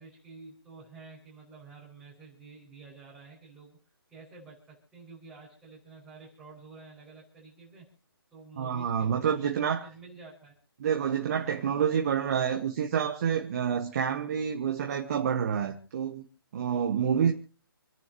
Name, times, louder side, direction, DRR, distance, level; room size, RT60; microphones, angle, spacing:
voice 1, 0.0-3.8 4.1-7.9 8.3-10.5 16.6-17.1, right 4 dB, 5° right, 6.1 m, -50 dB
voice 2, 8.6-9.9 10.8-16.2 16.5-17.3, right 8 dB, 40° right, 1.7 m, -28 dB
29.0 x 10.5 x 3.1 m
hypercardioid pair, 155°, 13 cm